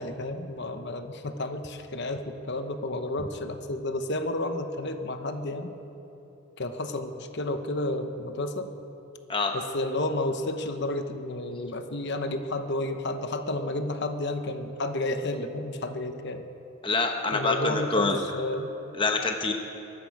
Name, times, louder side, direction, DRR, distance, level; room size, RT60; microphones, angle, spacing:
voice 1, 0.0-5.7 6.6-8.7 9.5-16.4 17.3-18.7, left 2 dB, 50° left, 7 dB, 0.9 m, -31 dB
voice 2, 16.8-18.2 18.9-19.5, left 3 dB, 25° left, 4 dB, 0.9 m, -26 dB
23.5 x 12.5 x 4.8 m, 3.0 s
head